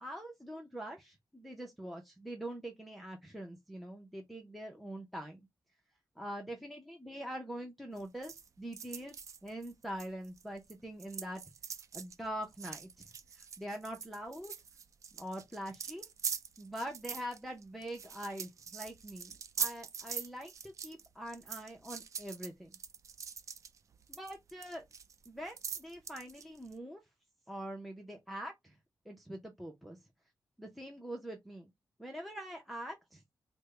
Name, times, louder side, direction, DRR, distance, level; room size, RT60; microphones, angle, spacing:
voice 1, 0.0-5.4 6.2-9.2 9.4-11.4 11.9-13.1 13.3-14.5 15.1-16.1 16.6-22.7 24.1-24.8 25.3-27.0 27.5-28.7 29.1-30.0 30.6-31.7 32.0-33.2, right 1 dB, ahead, 0.5 m, -44 dB
sound 1, 8.0-10.7 11.0-26.7, right 6 dB, 50° right, 0.3 m, -43 dB
3.3 x 2.0 x 3.2 m
wide cardioid pair, 135°, 7 cm